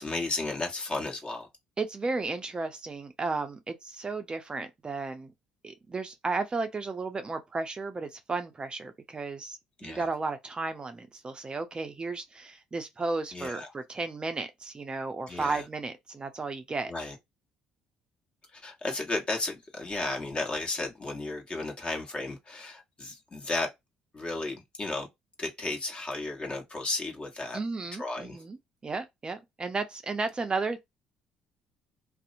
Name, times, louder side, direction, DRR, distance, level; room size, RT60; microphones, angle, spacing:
voice 1, 0.0-1.5 9.8-10.1 13.3-13.7 15.3-15.6 16.9-17.1 18.5-23.7 24.1-25.1 25.4-27.6 28.0-28.4, left 2 dB, 35° left, 1.1 m, -34 dB
voice 2, 1.8-5.3 5.6-16.9 27.5-28.6 28.8-30.8, right 3 dB, 30° right, 0.5 m, -34 dB
2.7 x 2.0 x 2.5 m
hypercardioid pair, 60°, 3 cm